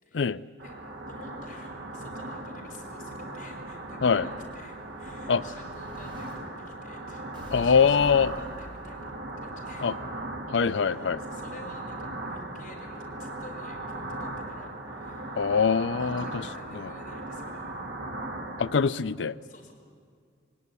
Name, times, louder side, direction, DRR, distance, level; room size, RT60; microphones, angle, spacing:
voice 1, 0.0-0.3 0.6-9.1 9.4-10.0 10.6-15.6 15.9-17.8 19.4-19.7, left 2 dB, 45° left, 4.7 m, -50 dB
sound 1, 0.6-18.7, right 2 dB, 60° right, 2.6 m, -38 dB
Explosion, 3.7-6.3 7.3-9.4, equal, 25° right, 5.1 m, -47 dB
voice 2, 7.5-8.3 9.8-9.9 10.5-11.2 15.4-16.4 18.6-19.4, left 6 dB, 75° left, 0.5 m, -23 dB
20.5 x 18.0 x 9.8 m
head